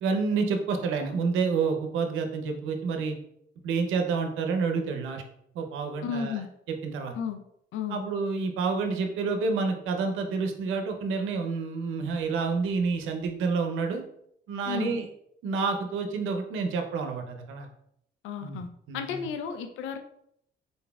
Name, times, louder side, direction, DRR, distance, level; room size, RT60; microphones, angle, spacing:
voice 1, 0.0-3.2 3.6-5.2 5.5-6.4 6.7-7.1 7.9-14.0 14.5-15.1 15.4-17.7 18.4-18.6 18.9-19.3, right 4 dB, 90° right, 5 dB, 0.6 m, -29 dB
voice 2, 6.0-6.5 7.2-7.4 7.7-8.0 14.7-14.9 18.2-18.7 18.9-20.0, left 6 dB, 90° left, 7 dB, 0.4 m, -33 dB
3.9 x 3.8 x 2.3 m, 0.72 s
cardioid pair, 90°, 20 cm